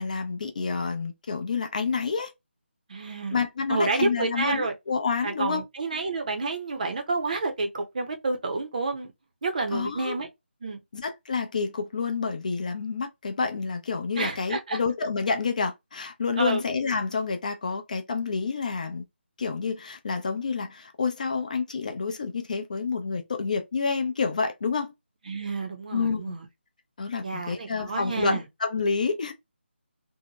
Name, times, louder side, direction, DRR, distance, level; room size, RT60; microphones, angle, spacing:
voice 1, 0.0-2.3 3.3-5.6 9.7-10.2 10.9-19.0 19.4-24.9 25.9-26.3 27.0-29.3, left 5 dB, 40° left, 0.5 m, -28 dB
voice 2, 2.9-3.4 3.7-4.7 5.2-9.1 9.4-10.3 10.6-10.8 14.2-14.8 16.4-16.6 25.3-26.4 27.2-28.4, right 3 dB, 40° right, 0.6 m, -29 dB
2.7 x 2.1 x 2.8 m
figure-of-eight pair, 165°, 6 cm